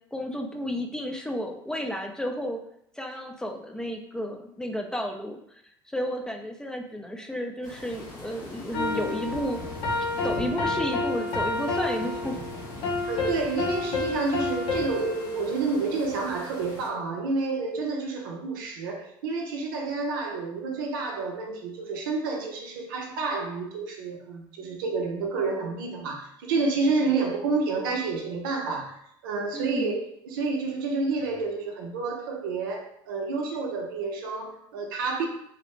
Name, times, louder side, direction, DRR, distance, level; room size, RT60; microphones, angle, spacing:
voice 1, 0.1-2.6 3.0-5.4 5.9-9.6 10.2-12.4 29.5-29.9, equal, 5° left, 3 dB, 0.4 m, -32 dB
sound 1, 7.6-16.9, left 1 dB, 85° left, 1.0 m, -42 dB
sound 2, 8.7-16.0, left 3 dB, 55° left, 0.7 m, -30 dB
voice 2, 13.1-29.0 29.2-35.3, right 3 dB, 90° right, 1 dB, 0.6 m, -29 dB
2.5 x 2.0 x 3.0 m, 0.71 s
supercardioid pair, 90°, 11 cm